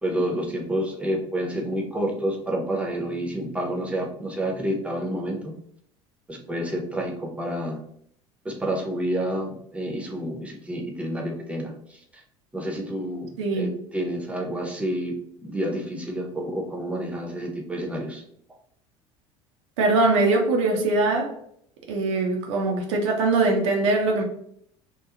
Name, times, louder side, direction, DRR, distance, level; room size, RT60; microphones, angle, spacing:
voice 1, 0.0-5.5 6.3-7.8 8.4-12.2 12.5-18.2, right 1 dB, 5° right, 0 dB, 0.6 m, -29 dB
voice 2, 13.4-13.7 19.8-21.4 21.9-24.2, right 2 dB, 60° right, 1 dB, 0.5 m, -22 dB
3.0 x 2.3 x 2.4 m, 0.68 s
figure-of-eight pair, 65°, 17 cm